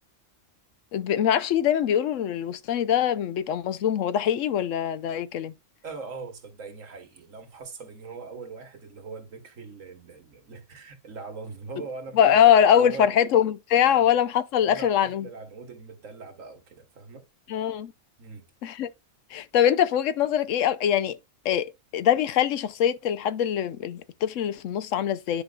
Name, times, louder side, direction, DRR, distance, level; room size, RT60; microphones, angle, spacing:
voice 1, 0.9-5.5 12.2-15.3 17.5-17.9 18.6-18.9 19.3-21.2 21.4-25.4, left 9 dB, 80° left, 1.0 m, -23 dB
voice 2, 5.8-13.2 13.9-14.1 14.6-17.3 18.2-18.4, right 4 dB, 85° right, 1.8 m, -41 dB
9.7 x 5.2 x 2.3 m
omnidirectional pair, 1.3 m